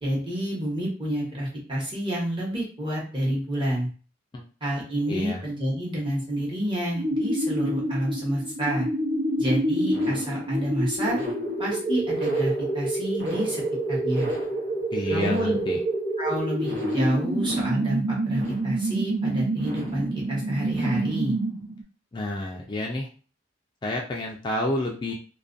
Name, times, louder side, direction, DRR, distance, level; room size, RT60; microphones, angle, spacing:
voice 1, 0.0-3.9 4.6-8.9 9.4-11.2 11.6-13.6 13.9-14.3 15.1-15.6 16.2-21.4, equal, 25° right, -4 dB, 1.0 m, -28 dB
voice 2, 5.1-5.4 14.9-15.8 22.1-23.1 23.8-25.1, left 1 dB, 25° left, -1 dB, 0.3 m, -29 dB
sound 1, 6.9-21.8, right 1 dB, 70° right, 0.9 m, -27 dB
2.4 x 2.2 x 2.5 m, 0.38 s
head